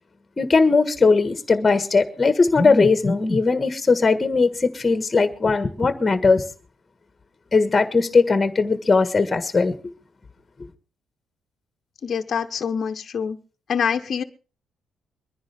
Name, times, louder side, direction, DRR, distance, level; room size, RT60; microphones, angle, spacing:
voice 1, 0.4-6.4 7.5-9.7, left 4 dB, 25° left, 1.6 m, -19 dB
voice 2, 12.0-13.4 13.7-14.2, left 7 dB, 50° left, 1.0 m, -25 dB
23.5 x 10.5 x 3.5 m
cardioid pair, 90°, 0 cm